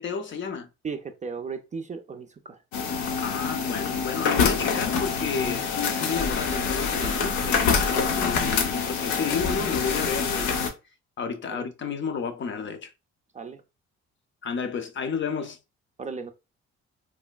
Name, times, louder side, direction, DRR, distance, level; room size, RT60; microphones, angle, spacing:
voice 1, 0.0-0.7 3.2-10.6 11.2-12.9 14.4-15.6, left 6 dB, 40° left, 0.5 m, -31 dB
voice 2, 0.8-2.6 11.5-11.7 13.3-13.6 16.0-16.3, right 5 dB, 25° right, 0.4 m, -35 dB
sound 1, 2.7-10.7, left 5 dB, 90° left, 0.6 m, -26 dB
3.2 x 2.1 x 2.2 m
supercardioid pair, 65°, 29 cm